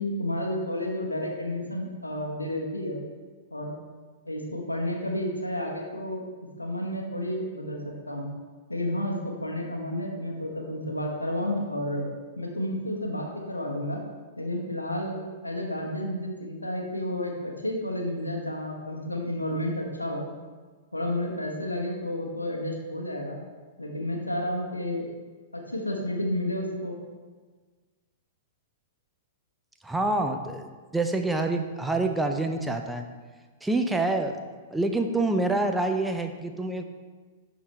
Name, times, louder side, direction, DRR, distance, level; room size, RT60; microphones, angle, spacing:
voice 1, 0.0-3.0 3.5-3.7 4.3-6.2 6.6-8.3 8.7-12.1 12.4-14.0 14.4-15.2 15.4-20.2 20.9-23.4 23.8-25.1 25.5-26.9, left 1 dB, 80° left, 1 dB, 1.1 m, -31 dB
voice 2, 29.8-33.0 33.6-34.4 34.7-36.8, right 2 dB, 5° right, 5 dB, 0.4 m, -27 dB
11.0 x 4.1 x 3.2 m, 1.4 s
figure-of-eight pair, 105°, 0 cm